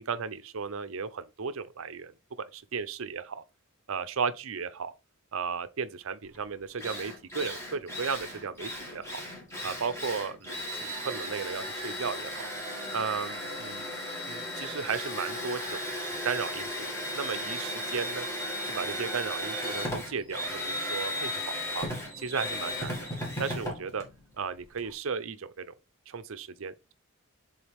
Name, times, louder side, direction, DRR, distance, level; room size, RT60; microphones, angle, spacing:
voice 1, 0.0-2.1 2.5-3.4 3.9-4.9 5.3-9.2 9.6-12.5 12.9-13.9 14.2-15.9 16.2-18.3 18.6-21.9 22.2-23.0 23.4-24.0 24.4-25.7 26.1-26.9, right 5 dB, 60° right, 0.6 m, -35 dB
Drill, 6.3-6.4 6.8-24.9, equal, 15° left, 1.9 m, -36 dB
7.2 x 3.9 x 3.4 m
head